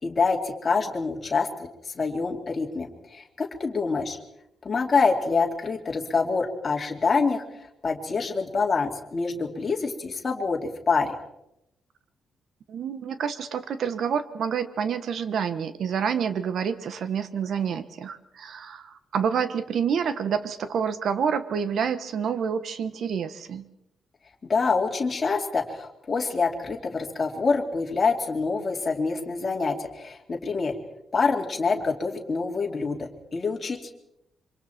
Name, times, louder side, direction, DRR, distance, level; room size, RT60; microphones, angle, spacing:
voice 1, 0.0-1.5 1.8-4.2 4.6-11.1 24.5-30.7 31.1-33.9, left 4 dB, 30° left, 1 dB, 2.6 m, -26 dB
voice 2, 12.7-23.7, right 7 dB, 55° right, 12 dB, 1.3 m, -28 dB
27.0 x 24.5 x 4.5 m, 0.82 s
wide cardioid pair, 170°, 0 cm